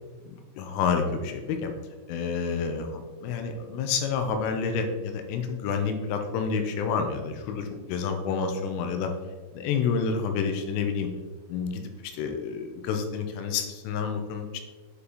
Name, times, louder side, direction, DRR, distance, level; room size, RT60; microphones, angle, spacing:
voice 1, 0.3-1.7 2.1-9.1 9.5-11.1 11.5-14.6, left 5 dB, 90° left, 6 dB, 3.3 m, -29 dB
8.0 x 5.6 x 4.0 m, 1.3 s
omnidirectional pair, 5.7 m